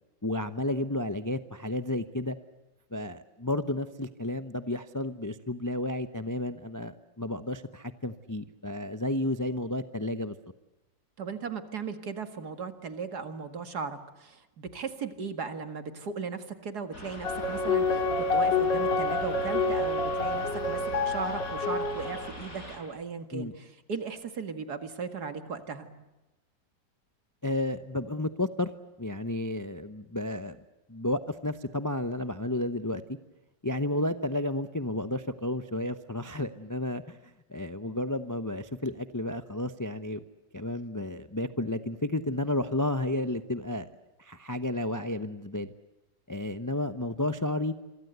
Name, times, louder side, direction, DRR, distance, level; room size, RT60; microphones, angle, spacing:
voice 1, 0.2-2.4 2.9-10.3 23.3-23.5 27.4-28.7 29.0-30.6 30.9-33.0 33.6-40.2 40.5-43.9 44.2-45.7 46.3-47.7, left 1 dB, 20° left, 11 dB, 0.5 m, -32 dB
voice 2, 11.2-25.9, right 5 dB, 60° right, 8 dB, 2.4 m, -37 dB
sound 1, 16.9-22.8, left 1 dB, 50° left, 7.1 m, -43 dB
sound 2, 17.2-22.3, left 3 dB, 85° left, 3.1 m, -28 dB
27.0 x 24.0 x 8.1 m, 1.0 s
omnidirectional pair, 1.9 m